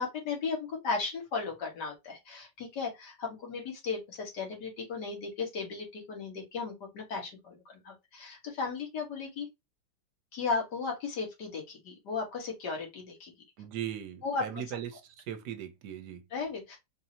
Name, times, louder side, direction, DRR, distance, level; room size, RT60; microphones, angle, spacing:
voice 1, 0.0-9.5 10.3-13.3 14.2-14.6 16.3-16.8, left 4 dB, 70° left, 2.0 m, -35 dB
voice 2, 13.6-15.0 15.3-16.2, right 10 dB, 70° right, 1.3 m, -38 dB
4.7 x 2.7 x 2.8 m
omnidirectional pair, 1.9 m